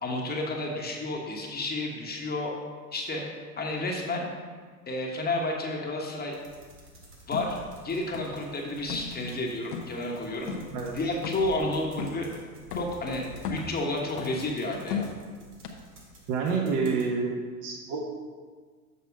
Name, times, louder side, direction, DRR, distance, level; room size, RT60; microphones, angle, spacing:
voice 1, 0.0-2.5 2.9-3.2 3.6-4.3 4.9-6.4 7.3-7.6 7.8-10.5 10.9-12.3 12.7-15.1, left 2 dB, 20° left, -1 dB, 1.2 m, -31 dB
sound 1, 6.3-17.1, right 1 dB, 85° right, 2.2 m, -51 dB
sound 2, 7.3-7.5 8.1-8.5 8.8-9.1 9.7-10.0 10.5-10.7 11.2-11.6 12.0-12.3 12.7-13.0 13.4-13.8 14.2-14.5 14.9-15.2 15.6-15.7, left 6 dB, 80° left, 1.1 m, -35 dB
voice 2, 16.3-17.3 17.6-18.1, right 5 dB, 45° right, -1 dB, 1.2 m, -28 dB
7.2 x 6.1 x 4.7 m, 1.6 s
hypercardioid pair, 100°, 46 cm